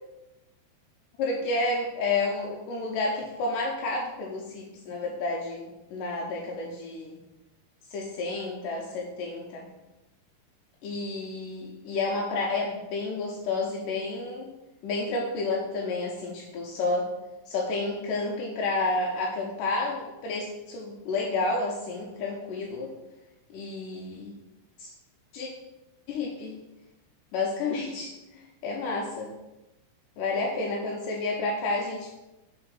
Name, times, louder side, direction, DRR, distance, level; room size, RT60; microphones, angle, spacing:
voice 1, 1.2-7.2 7.9-9.7 10.8-14.5 14.8-17.1 17.5-22.9 23.5-24.3 24.8-24.9 25.3-25.5 26.1-26.6 27.3-29.3 30.2-32.2, left 3 dB, 85° left, -2 dB, 1.9 m, -30 dB
5.6 x 3.9 x 5.2 m, 1.0 s
omnidirectional pair, 4.7 m